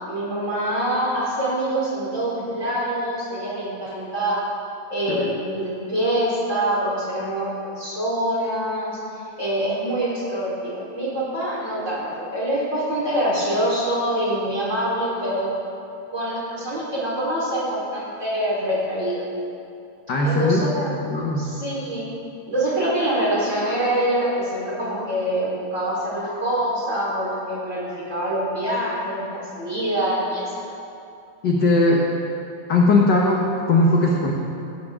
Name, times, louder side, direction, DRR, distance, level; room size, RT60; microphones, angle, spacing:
voice 1, 0.0-4.4 4.9-15.5 16.1-19.3 20.2-21.0 21.4-22.1 22.5-30.5, right 1 dB, 25° right, -7 dB, 4.1 m, -25 dB
voice 2, 20.1-20.6 21.1-21.5 31.4-32.1 32.7-34.3, left 2 dB, 55° left, -1 dB, 1.2 m, -19 dB
16.0 x 14.5 x 3.6 m, 2.6 s
omnidirectional pair, 3.3 m